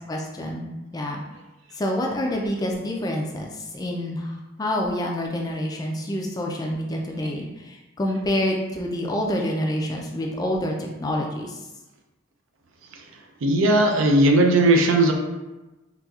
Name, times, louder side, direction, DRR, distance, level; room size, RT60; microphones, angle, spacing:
voice 1, 0.1-0.7 0.9-1.2 1.8-11.6, left 1 dB, 20° left, 0 dB, 0.3 m, -27 dB
voice 2, 13.4-15.1, right 1 dB, 85° right, 2 dB, 0.5 m, -17 dB
4.1 x 2.3 x 2.3 m, 1.1 s
head